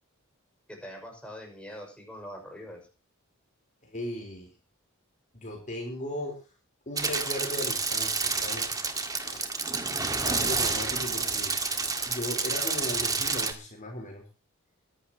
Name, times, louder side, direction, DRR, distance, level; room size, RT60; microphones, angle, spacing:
voice 1, 0.7-2.8, equal, 5° left, 0 dB, 6.2 m, -43 dB
voice 2, 3.8-4.5 5.3-6.4 6.9-8.7 9.2-9.5 10.2-11.5 12.1-14.2, left 1 dB, 35° left, 1 dB, 4.2 m, -37 dB
sound 1, 7.0-13.5, right 4 dB, 15° right, 1.9 m, -29 dB
22.5 x 12.0 x 3.0 m, 0.34 s
head